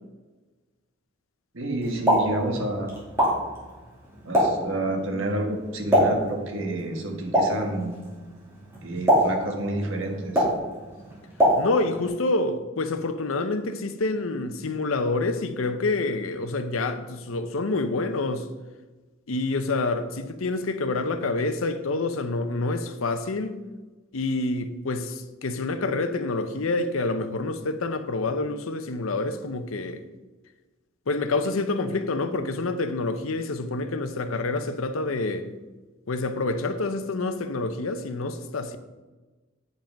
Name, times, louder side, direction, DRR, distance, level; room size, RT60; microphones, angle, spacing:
voice 1, 1.5-2.9 4.2-8.0 8.8-10.4, right 1 dB, 70° right, 1.4 m, -29 dB
Explosion, 1.8-12.1, equal, 10° right, 2.5 m, -26 dB
voice 2, 11.6-18.5 19.3-23.6 24.1-30.0 31.1-35.5 36.1-38.8, left 3 dB, 80° left, 0.7 m, -27 dB
8.8 x 5.4 x 5.2 m
head